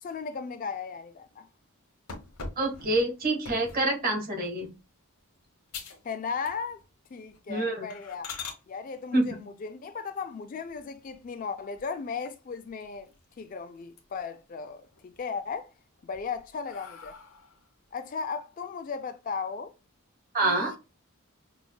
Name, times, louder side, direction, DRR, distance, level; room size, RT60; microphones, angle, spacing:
voice 1, 0.0-1.5 6.0-6.8 7.1-8.3 8.7-13.1 13.4-15.7 16.0-17.2 17.9-19.7 20.4-20.8, left 5 dB, 40° left, 0.3 m, -36 dB
sound 1, 2.1-3.9 4.4-4.8 5.2-5.3 5.7-6.1 6.4-6.9 7.2-7.4 7.9-8.6 10.6-11.3 11.7-11.8 12.2-12.3 12.6-13.4 13.8-14.4 14.8-15.4 16.0-17.7, left 4 dB, 80° left, 1.0 m, -43 dB
voice 2, 2.6-4.7 7.5-7.9 9.1-9.3 20.3-20.7, right 2 dB, 40° right, 1.3 m, -26 dB
5.3 x 2.4 x 2.2 m
head